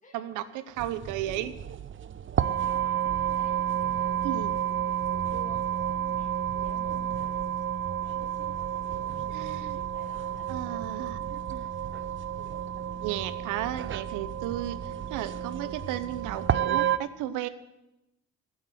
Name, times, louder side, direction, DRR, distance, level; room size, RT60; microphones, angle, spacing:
voice 1, 0.1-1.5 4.2-4.5 9.3-9.8 10.5-11.2 13.0-17.5, right 12 dB, 80° right, 13 dB, 0.9 m, -34 dB
sound 1, 0.8-17.0, right 10 dB, 40° right, 0.7 m, -31 dB
voice 2, 2.6-5.0 5.3-7.5 8.9-9.0 9.9-11.0, left 1 dB, 25° left, 1 dB, 2.4 m, -52 dB
12.0 x 8.9 x 7.9 m, 0.93 s
supercardioid pair, 70°, 30 cm